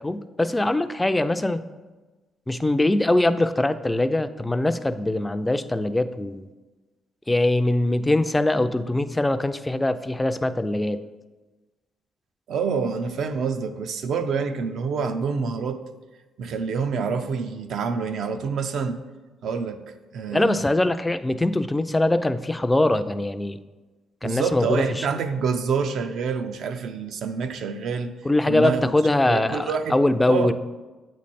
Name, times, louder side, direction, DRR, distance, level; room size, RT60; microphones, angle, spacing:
voice 1, 0.0-1.6 2.5-6.5 7.3-11.0 20.3-23.6 24.2-24.8 28.2-30.5, left 1 dB, 15° left, 11 dB, 0.3 m, -22 dB
voice 2, 12.5-15.8 16.4-19.0 19.4-19.8 20.1-20.6 24.2-28.1 28.5-28.9 29.2-30.0 30.3-30.5, right 5 dB, 70° right, 7 dB, 0.5 m, -27 dB
8.1 x 3.2 x 4.2 m, 1.2 s
cardioid pair, 90°, 0 cm